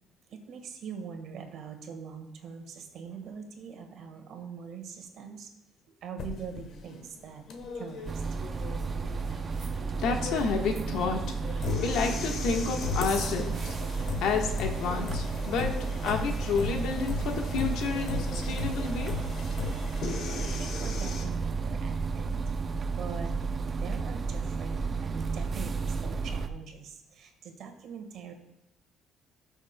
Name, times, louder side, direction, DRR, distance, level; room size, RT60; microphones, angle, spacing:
voice 1, 0.3-5.5 6.0-7.5 7.7-8.2 20.0-22.3 23.0-23.3 23.8-28.3, right 6 dB, 60° right, 4 dB, 1.5 m, -43 dB
sound 1, 6.2-21.2, left 5 dB, 60° left, 1.2 m, -37 dB
sound 2, 8.1-26.5, right 4 dB, 30° right, 0.4 m, -32 dB
voice 2, 10.0-19.1, left 5 dB, 80° left, 3 dB, 1.3 m, -31 dB
18.5 x 6.4 x 2.2 m, 0.86 s
cardioid pair, 130°, 0 cm